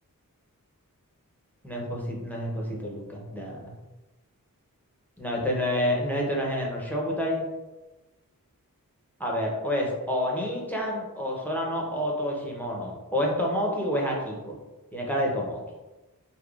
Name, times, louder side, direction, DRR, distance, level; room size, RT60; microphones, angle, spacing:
voice 1, 1.6-3.7 5.2-7.4 9.2-14.6 14.9-15.6, equal, 5° left, -3 dB, 0.8 m, -28 dB
3.5 x 2.9 x 2.4 m, 1.1 s
wide cardioid pair, 40°, 35 cm